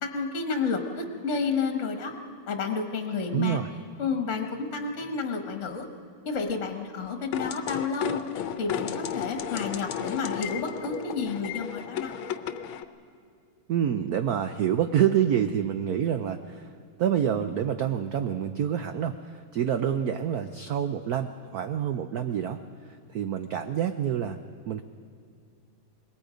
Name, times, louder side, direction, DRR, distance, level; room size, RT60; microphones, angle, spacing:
voice 1, 0.0-2.1 2.5-3.6 4.0-5.9 6.2-8.2 8.6-12.2, left 4 dB, 40° left, 5 dB, 1.5 m, -30 dB
voice 2, 3.3-3.7 13.7-16.7 17.0-22.6 23.1-24.4 24.7-24.8, right 9 dB, 75° right, 8 dB, 0.8 m, -27 dB
sound 1, 7.3-12.8, left 9 dB, 70° left, 1.5 m, -34 dB
26.0 x 21.5 x 5.1 m, 2.4 s
omnidirectional pair, 2.4 m